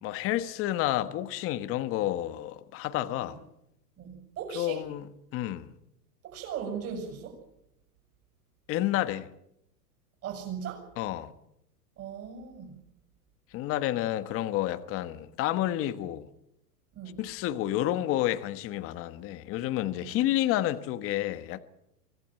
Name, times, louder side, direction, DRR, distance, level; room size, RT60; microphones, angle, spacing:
voice 1, 0.0-3.4 4.5-5.1 5.3-5.7 8.7-9.3 11.0-11.3 13.5-16.3 17.2-21.6, left 14 dB, 25° left, 1.2 m, -30 dB
voice 2, 4.0-4.8 6.2-7.4 10.2-10.9 12.0-12.8 16.9-17.2 20.0-20.1, right 7 dB, 30° right, 7.1 m, -38 dB
24.5 x 17.0 x 9.1 m
hypercardioid pair, 140°, 49 cm